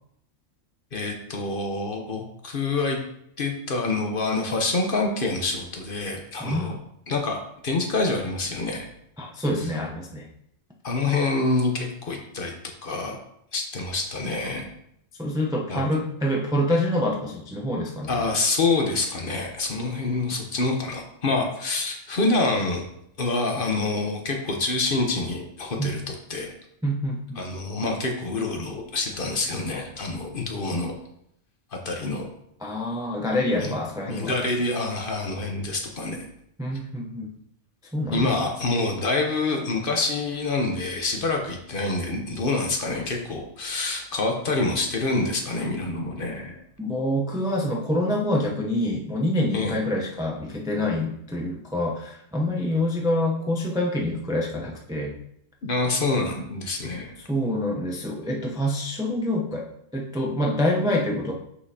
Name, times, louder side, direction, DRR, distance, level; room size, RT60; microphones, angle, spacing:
voice 1, 0.9-3.0 3.4-6.8 7.1-8.9 10.8-12.5 12.8-13.2 13.5-14.7 15.7-15.8 18.1-22.8 23.2-26.5 27.4-31.0 31.7-32.3 33.6-33.7 34.1-36.2 38.1-46.6 49.5-49.7 55.6-57.2, left 3 dB, 50° left, 2 dB, 1.0 m, -26 dB
voice 2, 6.4-6.8 9.2-10.3 15.2-18.2 25.8-25.9 26.8-27.4 32.6-34.5 36.6-37.3 37.9-38.5 46.8-55.1 57.2-59.7 59.9-61.3, left 1 dB, 5° right, -1 dB, 0.4 m, -26 dB
6.1 x 5.7 x 2.8 m, 0.75 s
omnidirectional pair, 1.3 m